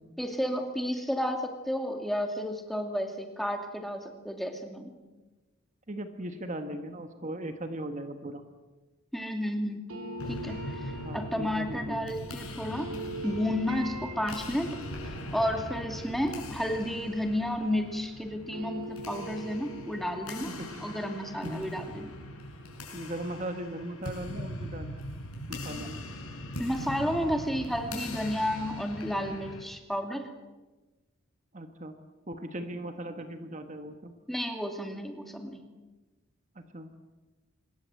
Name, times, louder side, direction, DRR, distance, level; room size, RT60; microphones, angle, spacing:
voice 1, 0.2-4.9 9.1-9.9 10.3-12.9 13.2-14.7 15.3-22.1 26.6-30.3 34.3-35.6, equal, ahead, 4 dB, 2.5 m, -32 dB
voice 2, 5.9-8.4 11.0-12.1 20.4-21.0 21.4-21.7 22.9-25.0 25.5-26.0 31.5-31.9 32.3-34.1 36.5-37.0, right 1 dB, 35° right, 7 dB, 1.4 m, -38 dB
sound 1, 9.9-18.0 18.3-23.2, right 2 dB, 80° right, 4.2 m, -44 dB
sound 2, 10.2-29.6, left 1 dB, 80° left, 6.7 m, -41 dB
26.0 x 22.0 x 7.8 m, 1.2 s
head